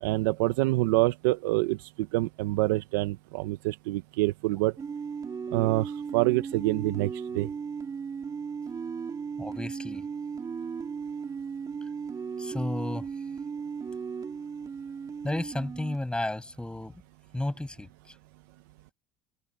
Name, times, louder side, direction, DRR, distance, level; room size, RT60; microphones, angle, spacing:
voice 1, 0.0-4.7 5.5-7.5, right 20 dB, 85° right, 1.0 m, -26 dB
sound 1, 4.8-16.0, right 6 dB, 35° right, 3.7 m, -36 dB
voice 2, 9.4-10.0 12.4-13.1 15.2-16.9 17.3-17.9, left 1 dB, 10° left, 7.7 m, -32 dB
open air
supercardioid pair, 80°, 11 cm